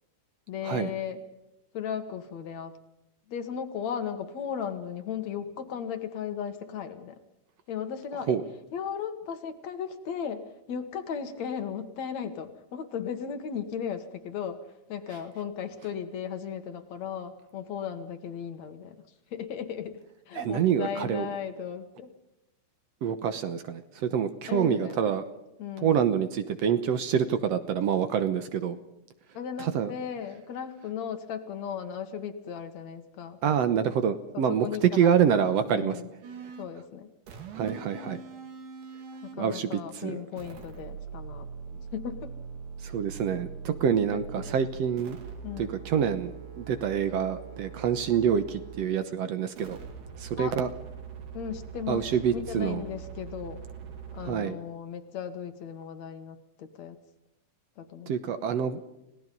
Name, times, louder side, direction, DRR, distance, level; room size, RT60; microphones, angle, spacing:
voice 1, 0.5-1.2 1.7-2.7 3.3-7.2 7.7-8.4 8.7-14.6 14.9-19.0 19.3-20.0 20.3-22.1 24.5-25.0 25.6-26.1 29.3-33.4 34.3-36.1 36.6-37.1 39.2-42.3 44.1-44.5 45.4-45.8 50.4-50.5 51.3-52.1 52.3-53.6 54.1-57.0 57.8-58.2, left 8 dB, 65° left, 9 dB, 2.6 m, -36 dB
voice 2, 20.4-21.3 23.0-25.2 25.8-28.8 29.6-29.9 33.4-36.0 37.5-38.2 39.4-40.3 42.8-45.2 45.6-46.3 46.6-49.8 50.2-50.7 51.9-52.8 54.2-54.6 58.1-58.8, right 8 dB, 65° right, 10 dB, 1.9 m, -26 dB
sound 1, 36.2-36.8 37.3-39.4 40.4-48.9 49.5-54.4, right 6 dB, 85° right, 3.8 m, -42 dB
30.0 x 17.5 x 5.3 m, 0.89 s
omnidirectional pair, 3.5 m